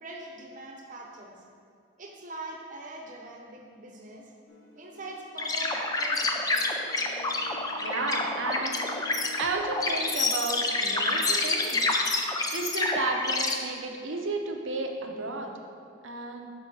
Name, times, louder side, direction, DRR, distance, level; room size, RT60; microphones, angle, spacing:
voice 1, 0.0-1.4 2.0-4.3 4.7-6.5 7.1-7.2, right 2 dB, 40° right, 0 dB, 0.8 m, -43 dB
sound 1, 4.5-11.0, equal, 70° left, 0.8 m, -49 dB
sound 2, 5.4-13.5, left 2 dB, 20° left, 0.3 m, -28 dB
voice 2, 7.8-8.8 9.4-11.9 12.5-15.5 16.0-16.5, right 3 dB, 70° right, 3 dB, 0.7 m, -32 dB
6.1 x 5.8 x 3.8 m, 2.3 s
head